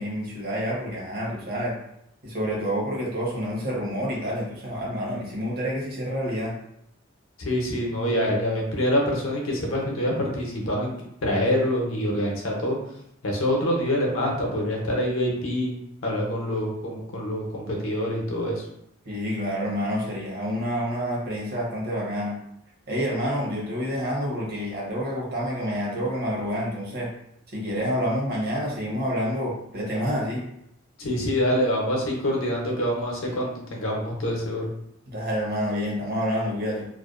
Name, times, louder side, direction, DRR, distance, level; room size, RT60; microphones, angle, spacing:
voice 1, 0.0-1.8 2.2-6.6 19.1-22.4 22.9-27.1 27.5-30.4 35.1-36.8, equal, 50° right, -3 dB, 0.7 m, -28 dB
voice 2, 7.4-12.8 13.2-15.7 16.0-18.6 31.0-34.7, equal, 75° left, -1 dB, 0.6 m, -26 dB
2.5 x 2.1 x 2.4 m, 0.78 s
head